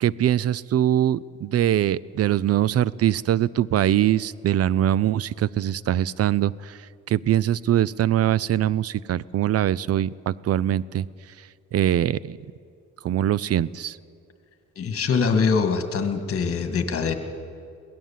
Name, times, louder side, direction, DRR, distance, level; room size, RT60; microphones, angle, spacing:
voice 1, 0.0-6.8 7.1-11.0 11.7-12.4 13.0-14.0, right 11 dB, 55° right, 22 dB, 0.5 m, -22 dB
voice 2, 14.8-17.2, left 5 dB, 50° left, 7 dB, 2.1 m, -23 dB
22.0 x 17.0 x 7.4 m, 2.3 s
cardioid pair, 90°, 30 cm